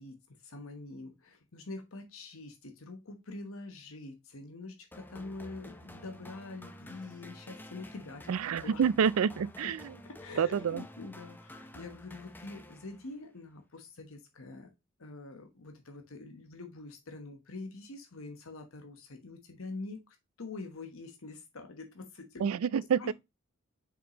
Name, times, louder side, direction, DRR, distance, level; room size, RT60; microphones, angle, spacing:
voice 1, 0.0-8.3 8.6-8.8 9.6-9.7 10.0-14.7 15.0-23.1, left 3 dB, 75° left, 1.1 m, -45 dB
sound 1, 4.9-13.2, left 1 dB, 10° left, 0.7 m, -50 dB
voice 2, 8.3-9.8 10.4-10.8 22.4-23.1, right 7 dB, 90° right, 0.4 m, -28 dB
6.3 x 5.2 x 2.9 m
head